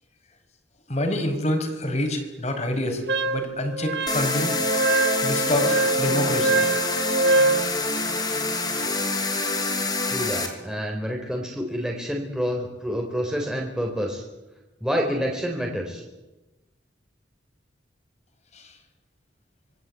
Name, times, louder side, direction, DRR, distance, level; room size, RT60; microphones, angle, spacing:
voice 1, 0.9-4.5 5.2-6.6 18.5-18.7, left 1 dB, 40° left, 6 dB, 5.0 m, -27 dB
Wind instrument woodwind instrument, 3.1-7.7, right 3 dB, 65° right, 1.7 m, -24 dB
sound 1, 4.1-10.5, left 3 dB, 25° left, 5.1 m, -26 dB
voice 2, 10.1-14.2 14.8-16.0, equal, 5° right, 0 dB, 4.2 m, -28 dB
26.5 x 21.5 x 8.5 m, 1.0 s
head